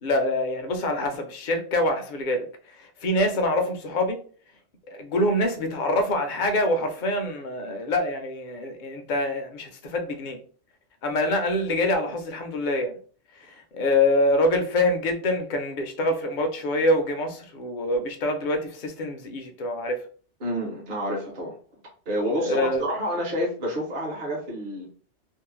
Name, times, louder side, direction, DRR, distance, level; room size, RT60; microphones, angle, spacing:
voice 1, 0.0-4.2 4.9-10.4 11.0-13.0 13.3-20.0 22.4-22.8, left 1 dB, 55° left, 0.6 m, -25 dB
voice 2, 20.4-21.6 22.1-24.9, equal, 50° right, 0.9 m, -29 dB
2.6 x 2.0 x 3.0 m
omnidirectional pair, 1.2 m